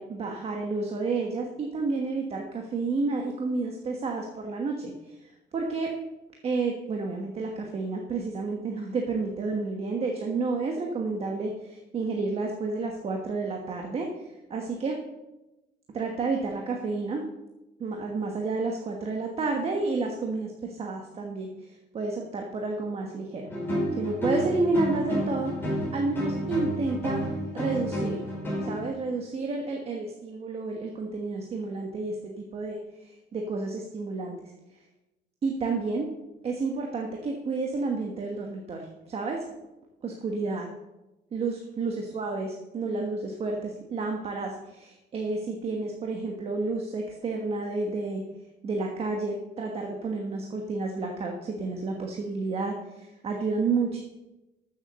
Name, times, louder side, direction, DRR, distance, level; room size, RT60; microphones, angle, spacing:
voice 1, 0.0-5.9 6.4-15.0 15.9-17.2 17.8-23.5 23.9-27.2 27.5-28.2 28.6-34.5 35.4-36.1 36.4-39.4 40.0-40.7 41.3-48.2 48.6-54.0, right 3 dB, 35° right, 2 dB, 1.3 m, -30 dB
sound 1, 23.5-28.9, equal, 10° left, 5.0 m, -30 dB
13.0 x 7.3 x 6.6 m, 1.0 s
cardioid pair, 175°, 18 cm